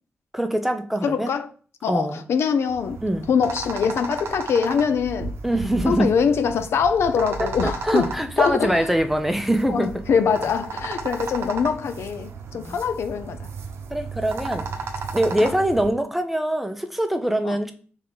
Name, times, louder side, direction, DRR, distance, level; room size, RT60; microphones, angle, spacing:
voice 1, 0.3-1.3 1.9-2.2 3.0-3.3 5.4-6.1 7.4-10.0 12.6-12.8 13.9-14.7 15.1-17.7, right 1 dB, 5° right, 0.6 m, -23 dB
voice 2, 1.0-1.5 1.8-3.0 3.3-5.3 5.9-8.1 8.4-8.8 9.7-13.5 15.4-15.5 17.4-17.6, left 6 dB, 80° left, 0.5 m, -23 dB
sound 1, 2.7-15.9, right 4 dB, 80° right, 0.7 m, -34 dB
3.6 x 3.4 x 3.8 m
wide cardioid pair, 115°, 4 cm